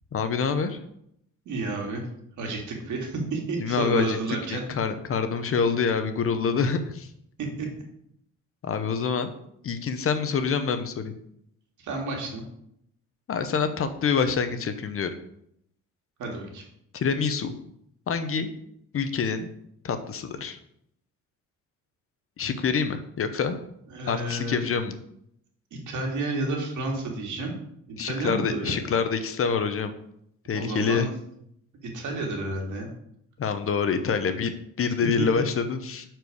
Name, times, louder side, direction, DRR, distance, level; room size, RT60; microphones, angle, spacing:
voice 1, 0.1-0.8 3.6-4.2 4.5-7.1 8.6-9.3 9.6-11.1 13.3-15.1 16.9-17.5 18.1-18.5 18.9-19.5 19.8-20.6 22.4-23.6 24.1-25.0 28.0-29.9 30.5-31.1 33.4-34.5 34.8-36.0, left 6 dB, 45° left, 9 dB, 0.8 m, -26 dB
voice 2, 1.5-2.0 2.4-4.6 7.4-7.7 11.8-12.4 16.2-16.6 23.9-24.6 25.9-27.5 27.9-28.8 30.5-31.1 31.8-32.9 35.2-35.3, right 2 dB, 75° right, 0 dB, 2.0 m, -30 dB
6.7 x 4.5 x 4.8 m, 0.73 s
cardioid pair, 90°, 30 cm